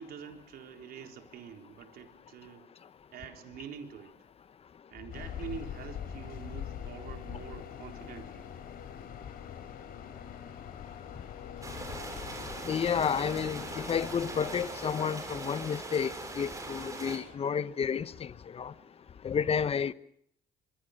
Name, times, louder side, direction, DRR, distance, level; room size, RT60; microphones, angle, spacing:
voice 1, 0.0-2.7 3.1-4.1 4.9-8.5, right 8 dB, 65° right, 3.9 m, -46 dB
sound 1, 5.1-14.7, left 9 dB, 60° left, 4.4 m, -43 dB
sound 2, 11.6-17.2, right 2 dB, 20° right, 7.2 m, -41 dB
voice 2, 12.7-18.7 19.2-19.9, left 7 dB, 35° left, 1.0 m, -31 dB
24.5 x 22.5 x 6.6 m
cardioid pair, 110°, 17 cm